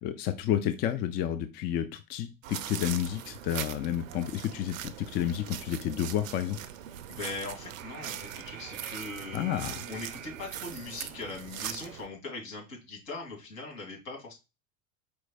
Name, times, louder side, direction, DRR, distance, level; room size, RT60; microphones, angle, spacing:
voice 1, 0.0-6.6 9.3-9.8, left 10 dB, 25° left, 10 dB, 0.4 m, -31 dB
sound 1, 2.4-12.1, right 11 dB, 70° right, 0.5 m, -41 dB
voice 2, 7.1-9.6 9.9-14.3, left 3 dB, 65° left, 0 dB, 2.2 m, -40 dB
4.5 x 4.3 x 2.2 m, 0.26 s
figure-of-eight pair, 75°, 41 cm